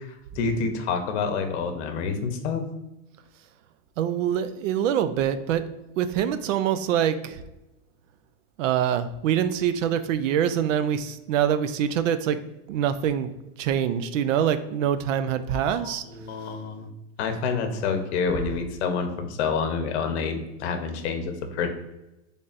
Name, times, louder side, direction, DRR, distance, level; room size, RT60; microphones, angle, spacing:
voice 1, 0.0-2.6 15.7-16.9 17.2-21.7, left 5 dB, 60° left, 6 dB, 0.8 m, -28 dB
voice 2, 4.0-5.6 6.0-7.4 8.6-12.4 12.7-13.3 13.6-16.0, right 9 dB, 80° right, 11 dB, 0.5 m, -24 dB
4.0 x 3.4 x 2.4 m, 0.96 s
supercardioid pair, 155°, 38 cm